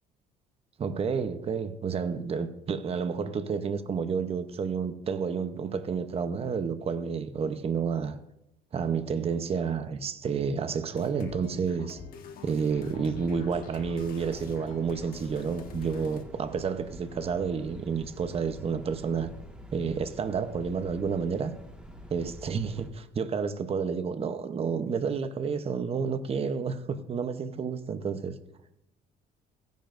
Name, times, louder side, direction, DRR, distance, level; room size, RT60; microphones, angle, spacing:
voice 1, 0.8-8.2 8.7-12.0 12.4-19.3 19.7-21.5 22.1-28.3, right 6 dB, 35° right, 0.8 m, -30 dB
sound 1, 10.9-16.2, left 6 dB, 60° left, 1.4 m, -46 dB
sound 2, 12.7-22.9, equal, 5° right, 1.7 m, -47 dB
16.0 x 10.5 x 2.6 m
cardioid pair, 110°, 17 cm